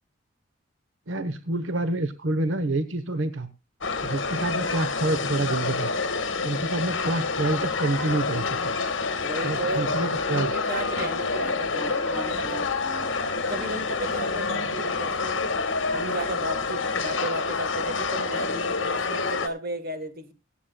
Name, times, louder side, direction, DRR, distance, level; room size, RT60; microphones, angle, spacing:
voice 1, 1.1-3.5 4.0-5.9 6.4-8.7 9.4-10.5, right 2 dB, 80° right, 1.0 m, -27 dB
sound 1, 3.8-19.5, left 4 dB, 75° left, 1.5 m, -28 dB
voice 2, 9.2-10.0 10.3-12.7 13.3-15.5 15.9-20.3, right 2 dB, 50° right, 1.4 m, -34 dB
Wind instrument woodwind instrument, 9.6-15.0, left 1 dB, 10° left, 3.7 m, -43 dB
24.0 x 8.4 x 2.3 m
head